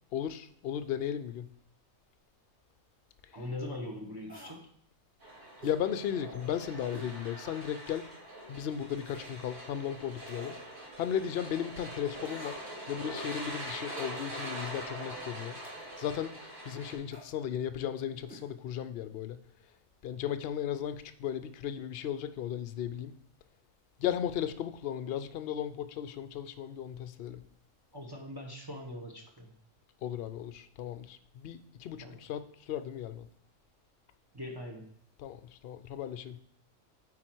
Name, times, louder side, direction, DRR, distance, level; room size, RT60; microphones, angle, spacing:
voice 1, 0.1-1.5 3.3-3.4 5.6-8.1 8.5-10.6 11.0-12.6 12.9-15.6 16.0-16.3 16.7-19.4 20.0-23.1 24.0-27.4 30.0-32.4 32.7-33.3 35.2-35.4 35.6-36.4, left 9 dB, 60° left, 11 dB, 0.6 m, -35 dB
voice 2, 3.3-4.6 27.9-29.5 32.0-32.2 34.3-34.9, left 1 dB, 20° right, 2 dB, 0.9 m, -41 dB
sound 1, 4.3-4.6 5.6-5.8 6.9-7.1 7.6-7.7 9.0-9.4 10.3-10.6 12.2-12.8 14.0-14.3 15.6-15.9 17.1-17.3 18.3-18.5 18.7-18.8, equal, 5° left, 1.4 m, -50 dB
sound 2, 5.2-17.0, right 1 dB, 65° right, 2.8 m, -43 dB
8.7 x 4.2 x 4.5 m, 0.68 s
omnidirectional pair, 1.4 m